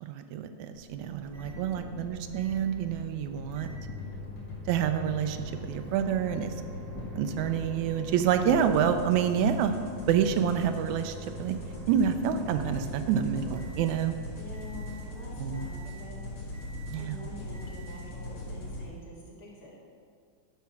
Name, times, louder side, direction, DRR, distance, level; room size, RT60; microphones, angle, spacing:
voice 1, 0.0-3.7 4.7-5.4 5.7-6.5 7.2-9.7 10.1-11.6 11.9-14.1 15.4-15.7 16.9-17.2, right 8 dB, 85° right, 8 dB, 2.0 m, -27 dB
Microwave oven, 0.7-18.7, left 2 dB, 55° right, 1.4 m, -45 dB
voice 2, 1.2-1.9 14.4-16.3 16.9-19.8, left 1 dB, 45° left, -4 dB, 2.8 m, -47 dB
sound 1, 1.3-18.9, left 1 dB, 70° left, 3.2 m, -42 dB
sound 2, 3.9-13.1, left 1 dB, 90° left, 0.9 m, -50 dB
10.5 x 6.0 x 5.7 m, 2.2 s
omnidirectional pair, 3.3 m